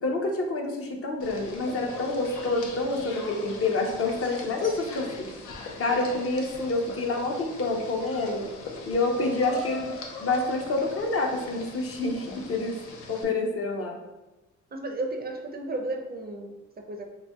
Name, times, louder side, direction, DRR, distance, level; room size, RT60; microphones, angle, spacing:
voice 1, 0.0-5.3 5.8-8.5 8.9-12.8 13.1-14.0, left 2 dB, 50° left, 2 dB, 0.7 m, -28 dB
sound 1, 1.2-13.2, left 3 dB, 90° left, 0.6 m, -41 dB
voice 2, 14.7-16.5 16.9-17.1, right 2 dB, 30° right, 3 dB, 0.4 m, -33 dB
4.1 x 2.7 x 2.2 m, 1.1 s
cardioid pair, 90°, 30 cm